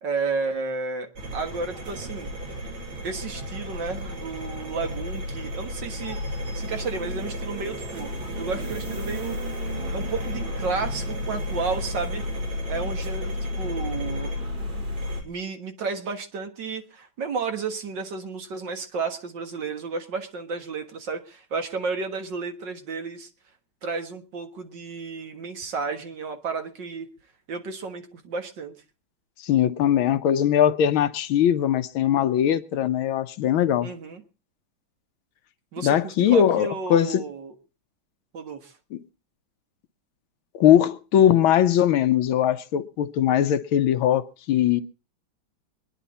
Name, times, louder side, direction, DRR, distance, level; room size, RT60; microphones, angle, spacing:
voice 1, 0.0-2.3 3.0-6.2 6.5-8.1 8.4-9.4 9.9-12.2 12.7-14.3 15.2-23.3 23.8-27.1 27.5-28.8 33.8-34.2 35.7-37.5 38.3-38.7, right 4 dB, 65° right, 2.2 m, -32 dB
sound 1, 1.2-15.2, left 1 dB, 90° right, 4.2 m, -32 dB
voice 2, 29.4-33.9 35.8-37.2 38.9-39.0 40.5-44.8, left 10 dB, 85° left, 1.7 m, -20 dB
24.0 x 10.5 x 4.1 m
omnidirectional pair, 2.2 m